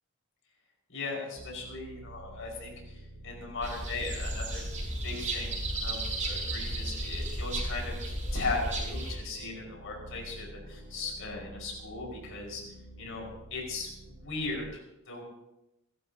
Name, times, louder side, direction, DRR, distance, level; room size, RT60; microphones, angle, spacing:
voice 1, 0.9-4.6 5.0-5.5 5.8-12.6 13.0-14.7 15.1-15.2, left 3 dB, 65° left, -1 dB, 5.4 m, -38 dB
sound 1, 1.4-14.7, right 1 dB, 75° right, 2.9 m, -49 dB
sound 2, 3.6-9.2, right 1 dB, 35° right, 5.9 m, -34 dB
29.0 x 12.5 x 2.9 m, 0.92 s
head